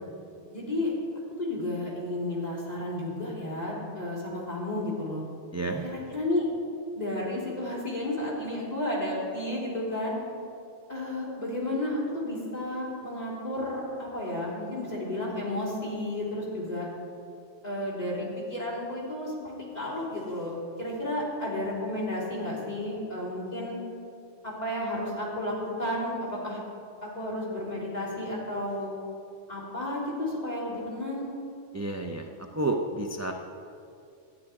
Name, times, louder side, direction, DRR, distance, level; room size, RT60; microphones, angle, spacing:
voice 1, 0.5-0.9 1.4-5.2 5.8-6.5 6.9-10.2 10.9-16.9 17.6-23.7 24.4-26.6 27.0-28.9 29.5-31.3, left 1 dB, 35° left, -6 dB, 3.4 m, -32 dB
voice 2, 5.5-5.8 31.7-32.3 32.5-33.3, right 2 dB, 25° right, 2 dB, 0.3 m, -30 dB
13.0 x 9.7 x 4.8 m, 2.5 s
omnidirectional pair, 1.2 m